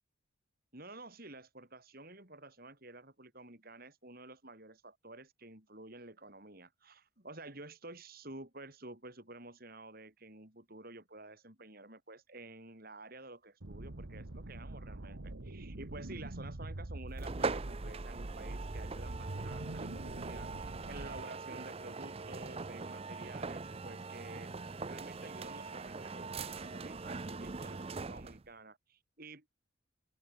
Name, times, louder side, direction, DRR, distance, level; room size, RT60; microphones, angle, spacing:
voice 1, 0.7-29.5, right 2 dB, 45° right, 5.5 m, -51 dB
sound 1, 13.6-21.2, right 1 dB, 75° right, 1.4 m, -44 dB
sound 2, 17.2-28.5, right 4 dB, 30° right, 0.6 m, -42 dB
open air
head